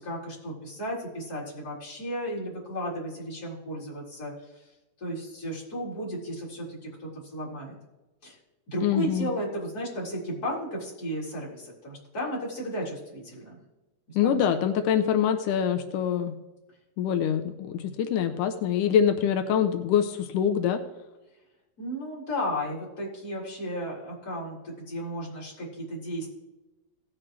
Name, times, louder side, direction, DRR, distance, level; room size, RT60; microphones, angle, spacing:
voice 1, 0.0-4.7 5.0-7.8 8.2-8.4 8.7-13.6 14.1-14.6 21.8-26.3, equal, 25° left, -5 dB, 3.9 m, -34 dB
voice 2, 8.8-9.3 14.2-16.4 17.0-20.8, left 8 dB, 90° left, 6 dB, 1.9 m, -25 dB
17.5 x 7.4 x 3.3 m, 1.1 s
omnidirectional pair, 4.5 m